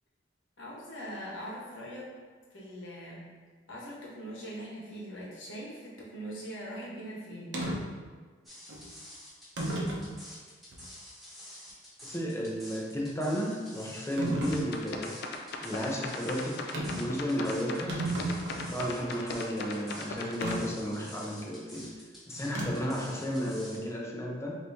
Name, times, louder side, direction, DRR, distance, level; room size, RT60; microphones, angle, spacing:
voice 1, 0.6-2.1 2.5-3.3 3.7-7.6, equal, 80° left, -5 dB, 1.2 m, -41 dB
sound 1, 7.5-7.8 8.7-8.8 9.6-10.1 10.7-10.8 14.2-14.6 16.7-17.1 17.4-17.5 17.7-18.8 20.4-20.6 22.5-22.9, right 1 dB, 65° right, 0.7 m, -33 dB
sound 2, 8.4-23.8, left 1 dB, ahead, 1.0 m, -48 dB
voice 2, 12.0-15.2 15.6-18.0 18.7-21.9 22.3-24.6, equal, 15° left, -2 dB, 0.6 m, -33 dB
sound 3, 14.4-20.6, left 3 dB, 60° left, 0.4 m, -38 dB
4.0 x 2.9 x 3.4 m, 1.5 s
head